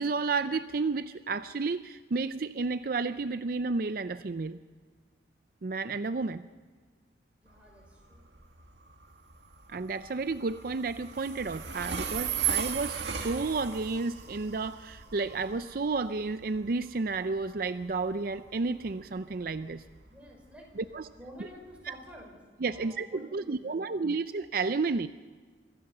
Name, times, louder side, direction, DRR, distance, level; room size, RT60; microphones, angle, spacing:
voice 1, 0.0-4.6 5.6-6.5 9.7-19.8 20.8-21.1 21.9-22.0 22.6-25.1, right 4 dB, 55° right, 11 dB, 0.5 m, -31 dB
voice 2, 7.4-8.2 20.0-20.7 21.2-23.9, equal, 10° right, -1 dB, 6.1 m, -50 dB
Train, 7.5-22.2, right 8 dB, 85° right, 2.0 m, -38 dB
25.5 x 15.5 x 6.7 m, 1.5 s
head